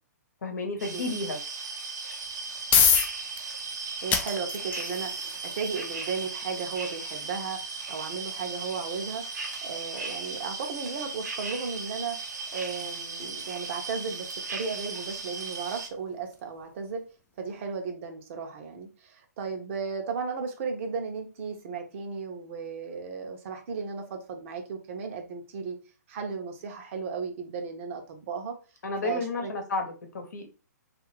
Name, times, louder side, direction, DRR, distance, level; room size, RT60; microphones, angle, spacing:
voice 1, 0.4-1.4 28.8-29.9 30.1-30.5, left 3 dB, 70° left, 4 dB, 0.9 m, -31 dB
sound 1, 0.8-15.9, right 4 dB, 75° right, 0.8 m, -37 dB
sound 2, 2.2-17.1, left 6 dB, 15° left, 0.4 m, -32 dB
voice 2, 4.0-9.2 9.6-12.2 12.5-17.0 17.4-25.8 26.1-28.6 29.0-29.5, right 5 dB, 45° right, 4 dB, 0.8 m, -35 dB
2.7 x 2.5 x 3.0 m, 0.33 s
hypercardioid pair, 135°, 9 cm